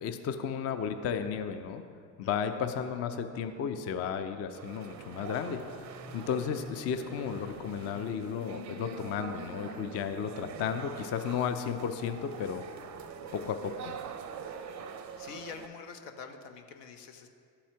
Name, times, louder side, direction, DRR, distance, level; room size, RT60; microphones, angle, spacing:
voice 1, 0.0-1.8 2.2-5.8 6.1-12.6 13.3-13.9, left 7 dB, 35° left, 8 dB, 0.4 m, -34 dB
sound 1, 4.5-15.7, right 7 dB, 35° right, 0.5 m, -45 dB
sound 2, 5.6-11.7, left 2 dB, 50° left, 1.3 m, -48 dB
voice 2, 13.2-13.5 14.9-17.3, left 6 dB, 75° left, 6 dB, 0.8 m, -47 dB
11.0 x 4.2 x 2.8 m, 2.3 s
hypercardioid pair, 65°, 50 cm